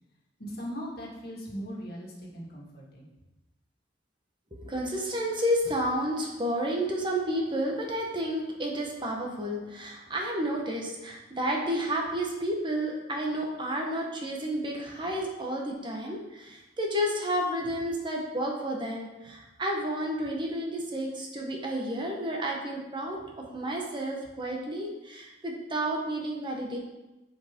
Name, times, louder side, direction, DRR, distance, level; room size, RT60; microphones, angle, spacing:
voice 1, 0.4-3.1, equal, 60° left, -3 dB, 1.9 m, -39 dB
voice 2, 4.5-26.8, equal, 25° right, 0 dB, 1.1 m, -31 dB
9.3 x 4.9 x 3.7 m, 1.0 s
head